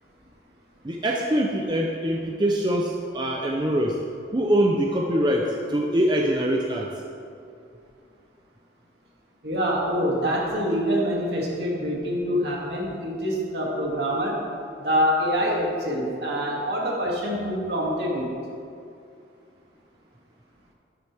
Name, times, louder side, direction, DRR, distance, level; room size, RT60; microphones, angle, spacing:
voice 1, 0.8-4.0 4.3-6.9, right 1 dB, 25° right, 0 dB, 0.6 m, -23 dB
voice 2, 9.4-14.4 14.8-18.3, equal, 65° right, -3 dB, 2.4 m, -25 dB
11.5 x 10.5 x 3.5 m, 2.5 s
head